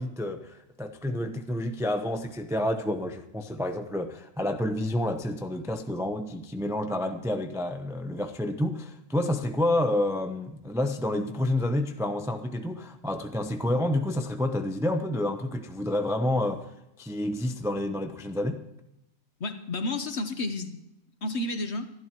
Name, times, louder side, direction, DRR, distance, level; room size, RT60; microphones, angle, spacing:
voice 1, 0.0-16.6 17.0-18.6, left 1 dB, 5° right, 6 dB, 0.4 m, -29 dB
voice 2, 19.4-20.8 21.2-21.9, left 2 dB, 45° left, 9 dB, 1.2 m, -31 dB
25.0 x 12.5 x 3.0 m, 0.86 s
omnidirectional pair, 1.7 m